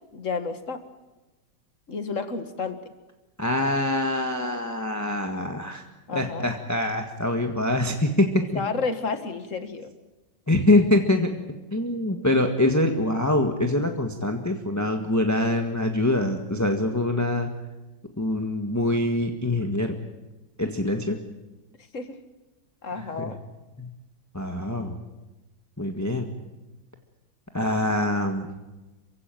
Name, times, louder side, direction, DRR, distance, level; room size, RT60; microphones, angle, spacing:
voice 1, 0.1-0.8 1.9-2.8 6.1-6.5 8.5-9.9 21.9-22.2 22.8-23.4, left 4 dB, 40° left, 9 dB, 2.1 m, -31 dB
voice 2, 3.4-5.8 6.1-8.6 10.5-11.3 11.7-17.5 18.2-19.9 20.6-21.2 23.0-23.1 23.8-23.9 24.3-24.9 25.8-26.3 27.5-28.5, left 1 dB, 10° left, 4 dB, 1.5 m, -24 dB
28.0 x 16.5 x 9.2 m, 1.1 s
omnidirectional pair, 2.0 m